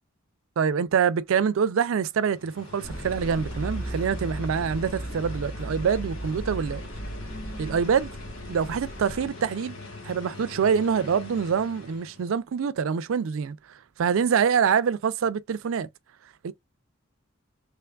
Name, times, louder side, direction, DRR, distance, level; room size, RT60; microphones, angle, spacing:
voice 1, 0.6-6.8 7.6-8.1 8.5-9.8 10.0-13.6 14.0-15.9 16.4-16.5, right 6 dB, 75° right, 0.4 m, -25 dB
sound 1, 2.3-12.3, left 3 dB, 80° left, 1.4 m, -42 dB
sound 2, 2.8-9.3, right 1 dB, 10° left, 0.5 m, -36 dB
3.4 x 3.2 x 2.2 m
head